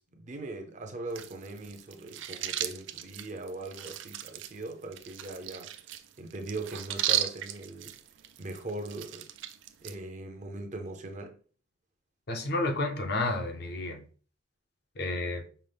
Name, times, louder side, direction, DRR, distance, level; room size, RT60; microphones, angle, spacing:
voice 1, 0.0-5.7 6.2-7.9 8.4-9.3 9.8-11.4, right 2 dB, 40° right, 0.6 m, -40 dB
sound 1, 1.1-9.9, right 12 dB, 80° right, 0.4 m, -36 dB
voice 2, 12.3-14.0 15.0-15.4, left 2 dB, 55° left, 0.7 m, -31 dB
5.6 x 2.1 x 3.4 m
head